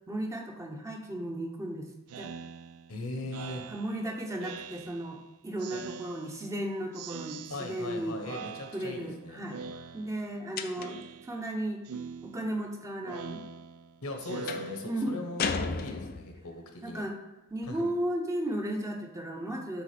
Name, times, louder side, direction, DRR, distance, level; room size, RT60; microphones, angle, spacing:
voice 1, 0.1-1.9 2.2-2.3 3.7-8.2 8.7-9.6 9.9-11.8 12.2-13.4 14.8-15.2 16.8-17.1 17.5-19.8, right 1 dB, 15° right, 2 dB, 0.7 m, -35 dB
Speech synthesizer, 2.1-5.2 5.6-6.6 6.9-8.0 8.2-9.2 9.5-10.4 10.7-11.5 11.8-15.4, right 5 dB, 75° right, 0.3 m, -44 dB
voice 2, 2.9-3.6 7.5-9.4 14.0-17.0 17.7-17.9, left 2 dB, 80° left, 3 dB, 1.2 m, -39 dB
sound 1, 10.6-11.1 14.5-14.8 15.4-16.5, left 5 dB, 40° left, 0.4 m, -33 dB
8.0 x 3.6 x 4.9 m, 1.0 s
head